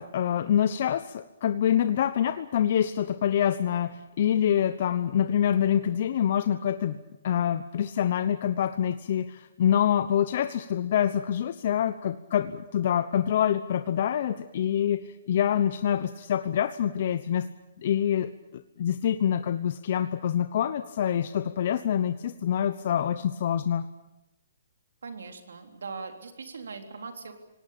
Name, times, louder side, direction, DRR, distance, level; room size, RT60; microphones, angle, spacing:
voice 1, 0.0-7.0 7.2-15.0 15.3-17.5 17.8-23.8, left 9 dB, 50° left, 11 dB, 0.9 m, -26 dB
voice 2, 25.0-27.3, right 4 dB, 85° right, 6 dB, 3.8 m, -40 dB
26.0 x 18.5 x 8.7 m, 0.94 s
hypercardioid pair, 155°, 0 cm